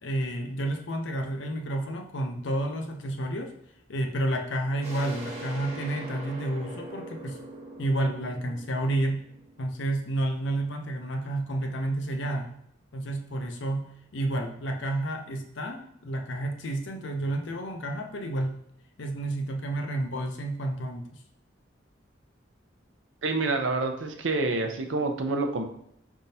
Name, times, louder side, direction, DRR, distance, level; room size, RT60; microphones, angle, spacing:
voice 1, 0.0-3.5 3.9-7.4 7.8-9.2 9.6-12.5 12.9-18.5 19.0-21.1, right 1 dB, 70° left, 4 dB, 0.7 m, -30 dB
sound 1, 4.8-10.3, right 2 dB, 35° right, 1.1 m, -42 dB
voice 2, 23.2-25.6, right 3 dB, 85° right, 5 dB, 0.6 m, -27 dB
5.3 x 3.5 x 2.7 m, 0.73 s
head